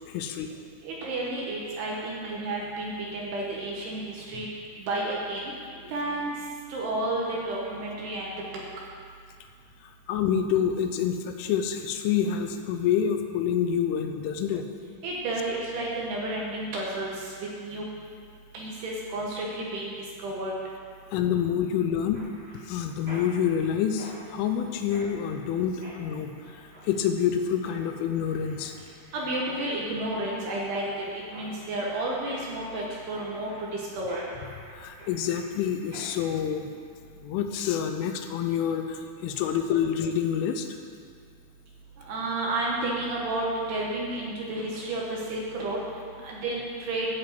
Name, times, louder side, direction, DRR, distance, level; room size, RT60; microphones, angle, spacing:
voice 1, 0.1-0.5 10.1-14.7 21.1-22.2 22.7-28.8 34.7-36.7 37.2-40.7, left 8 dB, 85° left, 6 dB, 3.0 m, -27 dB
voice 2, 0.8-4.0 4.3-4.5 4.9-5.5 5.9-6.3 6.7-8.3 15.0-17.1 17.4-17.8 18.5-19.9 20.2-20.5 29.1-30.8 31.1-33.7 34.0-34.2 42.1-45.8 46.2-47.1, right 2 dB, 70° right, -3 dB, 2.8 m, -31 dB
Mechanisms, 22.1-36.3, equal, 20° right, 1.8 m, -48 dB
12.0 x 5.2 x 7.8 m, 2.3 s
omnidirectional pair, 5.7 m